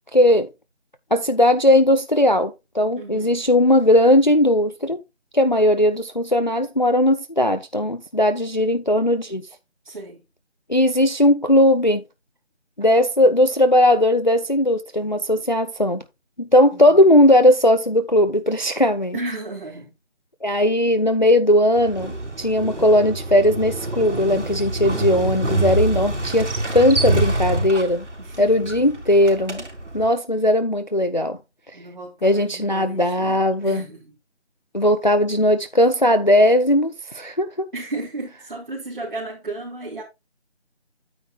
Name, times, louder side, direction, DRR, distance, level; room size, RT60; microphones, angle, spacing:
voice 1, 0.1-0.5 1.1-5.0 5.3-9.4 10.7-12.0 12.8-16.0 16.4-19.2 20.4-28.1 28.4-29.6 29.9-31.4 32.2-33.8 34.7-37.7, left 1 dB, 40° left, 0.5 m, -18 dB
voice 2, 3.0-3.4 9.8-10.2 16.7-17.0 19.1-19.9 28.2-28.9 31.7-34.1 37.7-40.0, right 2 dB, 45° right, 2.7 m, -34 dB
Motorcycle, 21.7-30.1, right 2 dB, 85° right, 3.6 m, -26 dB
9.3 x 9.0 x 2.4 m
figure-of-eight pair, 175°, 35 cm